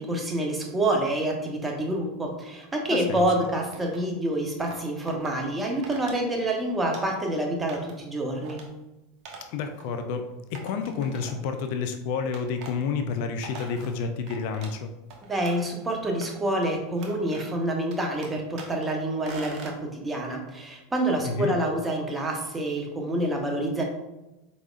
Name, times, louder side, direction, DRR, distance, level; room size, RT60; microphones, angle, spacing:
voice 1, 0.0-8.6 15.3-23.8, right 1 dB, 20° right, 1 dB, 1.0 m, -27 dB
voice 2, 2.9-3.5 9.5-14.9 21.2-21.5, left 5 dB, 60° left, 6 dB, 0.5 m, -30 dB
sound 1, 3.3-4.1 4.6-5.3 5.8-6.2 6.5-7.3 7.7-8.0 8.4-8.7 9.3-9.5 9.8-9.9 10.5-11.6 12.3-12.8 13.2-14.8 15.1-15.8 16.2-16.7 17.0-17.6 17.9-18.9 19.2-19.8, right 4 dB, 50° right, 1.0 m, -44 dB
4.7 x 4.1 x 2.5 m, 0.98 s
hypercardioid pair, 90°, 0 cm